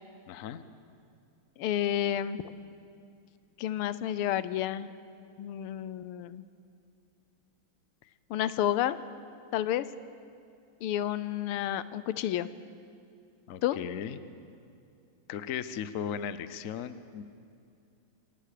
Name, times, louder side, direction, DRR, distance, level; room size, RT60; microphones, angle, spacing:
voice 1, 0.3-0.6 13.5-14.2 15.3-17.2, left 8 dB, 65° left, 13 dB, 0.8 m, -37 dB
voice 2, 1.6-2.4 3.6-4.9 5.4-6.4 8.3-9.0 9.5-9.8 10.8-12.5 13.6-13.8, left 11 dB, 85° left, 15 dB, 1.6 m, -30 dB
27.0 x 16.5 x 6.7 m, 2.5 s
omnidirectional pair, 2.4 m